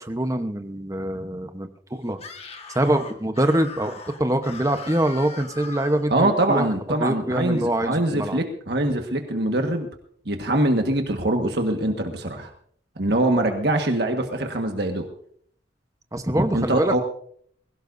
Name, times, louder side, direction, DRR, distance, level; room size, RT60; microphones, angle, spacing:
voice 1, 0.0-2.2 2.7-6.7 7.0-8.4 16.1-17.0, right 1 dB, 20° right, 7 dB, 1.0 m, -24 dB
Screaming, 2.1-6.1, left 4 dB, 35° left, 1.6 m, -40 dB
voice 2, 6.1-9.9 10.2-12.5 13.0-15.1 16.5-17.0, right 1 dB, 60° right, 4 dB, 1.6 m, -23 dB
21.5 x 17.0 x 2.7 m, 0.62 s
head